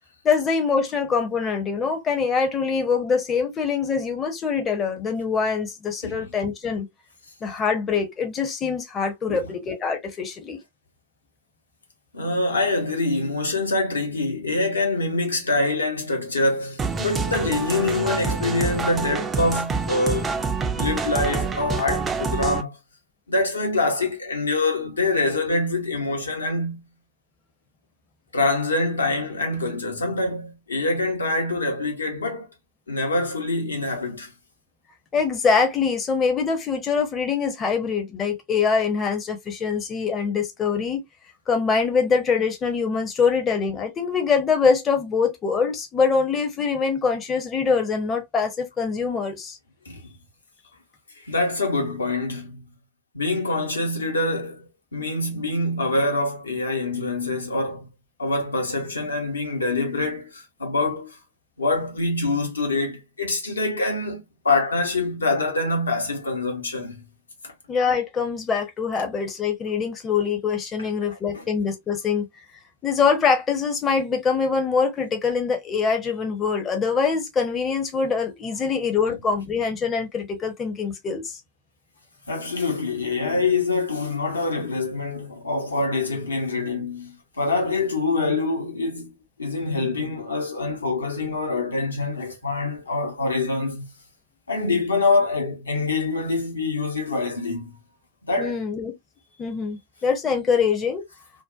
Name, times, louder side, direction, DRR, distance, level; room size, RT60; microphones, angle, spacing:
voice 1, 0.2-6.9 7.4-10.6 35.1-41.0 41.5-49.6 67.7-72.3 72.8-81.4 98.4-99.0 99.4-101.0, left 5 dB, 25° left, 0.6 m, -24 dB
voice 2, 12.1-20.3 20.7-22.8 23.3-26.8 28.3-32.5 32.9-34.3 49.9-50.0 51.3-52.6 53.1-57.9 58.2-61.2 61.6-67.1 67.4-67.5 71.3-71.4 82.3-89.1 89.4-93.9 94.5-97.8 98.2-98.5, left 2 dB, 75° left, 0.8 m, -25 dB
sound 1, 16.8-22.6, right 4 dB, 20° right, 0.4 m, -27 dB
2.6 x 2.1 x 2.3 m
figure-of-eight pair, 90°, 0 cm